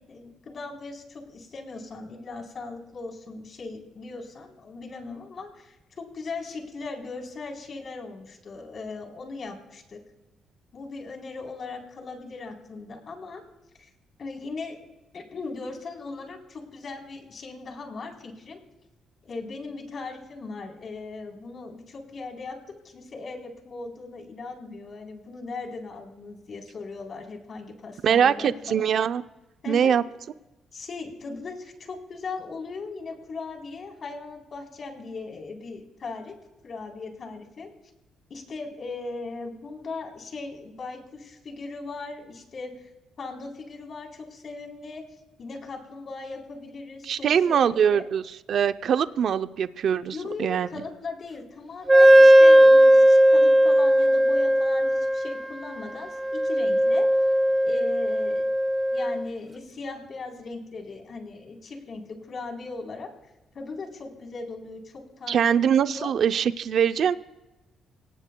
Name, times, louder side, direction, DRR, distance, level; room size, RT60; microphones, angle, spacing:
voice 1, 0.1-10.0 10.7-13.4 13.8-13.9 14.2-14.8 15.1-18.6 19.2-28.9 29.6-29.9 30.7-36.4 36.6-37.7 38.3-42.9 43.2-45.0 45.4-48.1 50.1-57.1 57.6-58.6 58.9-63.1 63.5-65.5 66.0-66.1, left 3 dB, 50° left, 2 dB, 3.7 m, -38 dB
voice 2, 28.0-29.2 29.7-30.0 47.0-48.2 48.5-50.7 65.3-67.2, right 8 dB, 65° right, 11 dB, 0.5 m, -22 dB
Wind instrument woodwind instrument, 51.9-59.2, equal, 15° right, 0.7 m, -17 dB
25.0 x 18.0 x 2.3 m, 1.0 s
cardioid pair, 90°, 0 cm